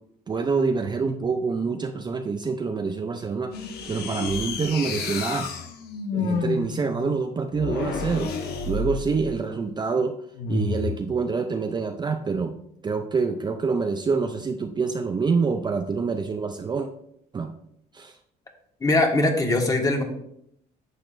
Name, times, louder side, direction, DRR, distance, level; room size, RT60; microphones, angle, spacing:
voice 1, 0.3-3.5 3.9-5.6 6.1-8.4 8.7-10.2 10.5-12.5 12.8-16.9 17.3-17.5 17.9-18.2, right 4 dB, 25° right, 5 dB, 0.5 m, -26 dB
sound 1, 3.5-9.5 10.3-11.0, left 4 dB, 70° left, 1.2 m, -30 dB
voice 2, 18.8-20.0, left 2 dB, 20° left, 3 dB, 1.5 m, -21 dB
10.5 x 6.5 x 2.6 m, 0.73 s
cardioid pair, 110°, 17 cm